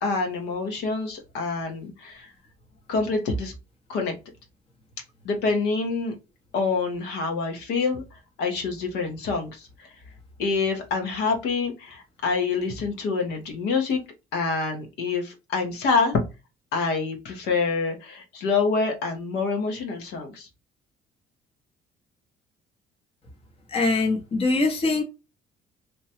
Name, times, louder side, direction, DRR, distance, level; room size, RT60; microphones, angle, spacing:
voice 1, 0.0-2.3 2.9-3.5 3.9-4.1 5.2-6.1 6.5-9.9 10.4-14.0 14.3-16.2 16.7-20.5, left 4 dB, 80° left, 1.1 m, -26 dB
voice 2, 23.7-25.0, left 3 dB, 35° left, 0.9 m, -23 dB
2.9 x 2.2 x 2.8 m
cardioid pair, 110°, 17 cm